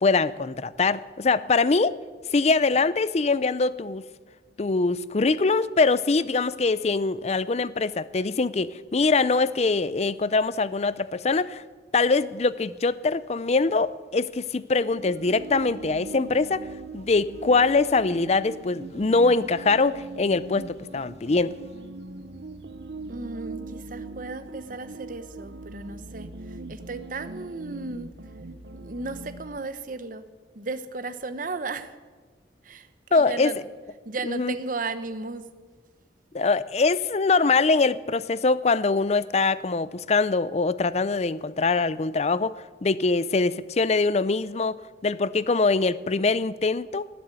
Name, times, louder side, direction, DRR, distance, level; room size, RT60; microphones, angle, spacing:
voice 1, 0.0-1.9 2.3-4.0 4.6-11.6 11.9-16.7 16.9-21.5 33.1-33.5 34.3-34.5 36.3-47.1, left 3 dB, 35° left, 17 dB, 0.5 m, -23 dB
sound 1, 14.8-29.6, right 3 dB, 70° right, 0.9 m, -41 dB
voice 2, 23.1-28.1 28.7-30.2 30.5-31.9 32.6-33.6 34.0-35.5, right 3 dB, 50° right, 12 dB, 1.0 m, -35 dB
19.0 x 7.7 x 9.0 m, 1.4 s
head